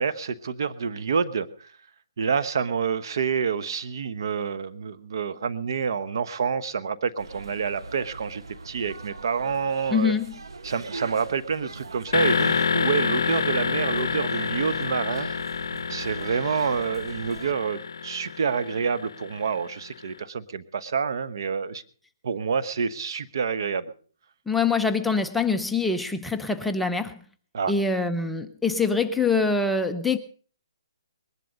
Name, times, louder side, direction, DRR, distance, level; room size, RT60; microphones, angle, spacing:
voice 1, 0.0-1.7 2.2-10.1 10.6-15.3 15.9-21.8 22.2-23.9 27.5-27.7, right 6 dB, 60° right, 1.1 m, -28 dB
sound 1, 7.2-17.5, right 3 dB, 85° right, 1.3 m, -41 dB
voice 2, 9.9-10.3 24.5-27.2 27.7-30.2, left 4 dB, 5° left, 0.6 m, -24 dB
sound 2, 12.1-19.9, left 6 dB, 70° left, 0.6 m, -28 dB
20.5 x 11.5 x 5.3 m
hypercardioid pair, 150°, 2 cm